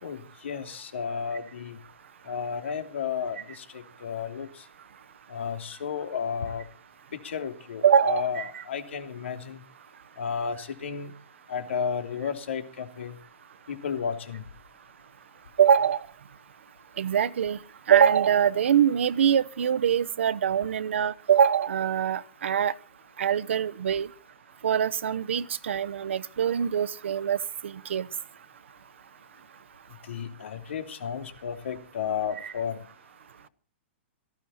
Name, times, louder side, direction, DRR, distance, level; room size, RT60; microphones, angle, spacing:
voice 1, 0.0-1.8 2.2-4.6 5.3-6.6 7.1-9.6 10.2-11.1 11.5-13.1 13.7-14.4 30.0-32.8, left 7 dB, 90° left, 6 dB, 2.8 m, -33 dB
voice 2, 7.8-8.5 15.6-16.0 17.0-17.6 17.9-22.7 23.2-24.1 24.6-27.4 27.9-28.0 32.4-32.5, right 8 dB, 80° right, 14 dB, 0.9 m, -23 dB
18.0 x 15.5 x 4.2 m, 0.40 s
hypercardioid pair, 175°, 6 cm